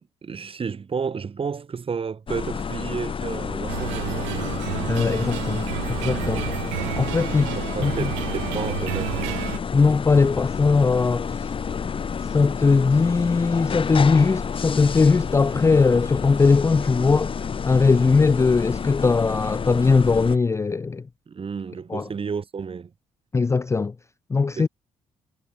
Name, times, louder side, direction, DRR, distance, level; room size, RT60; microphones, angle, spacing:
voice 1, 0.2-4.4 5.5-5.6 7.6-9.5 21.3-22.9 24.6-24.7, right 6 dB, 35° right, 2.6 m, -32 dB
kronos hopter, 2.3-20.4, left 6 dB, 35° left, 1.2 m, -30 dB
sound 1, 3.7-9.6, right 26 dB, 70° right, 3.5 m, -31 dB
voice 2, 4.9-6.5 7.0-8.1 9.7-11.4 12.3-17.4 17.6-21.0 21.9-22.0 23.3-23.9 24.3-24.7, left 4 dB, 15° left, 0.5 m, -20 dB
figure-of-eight pair, 45°, 16 cm